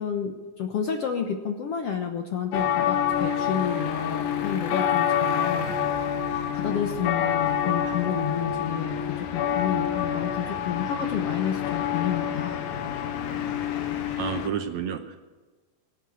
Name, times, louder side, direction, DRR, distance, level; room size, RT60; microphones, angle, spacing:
voice 1, 0.0-9.0 9.3-12.7, left 8 dB, 65° left, 4 dB, 1.6 m, -30 dB
sound 1, 2.5-14.5, left 9 dB, 85° left, 2.9 m, -27 dB
voice 2, 14.2-15.2, right 8 dB, 70° right, 6 dB, 1.9 m, -30 dB
23.0 x 9.1 x 6.3 m, 1.3 s
omnidirectional pair, 3.9 m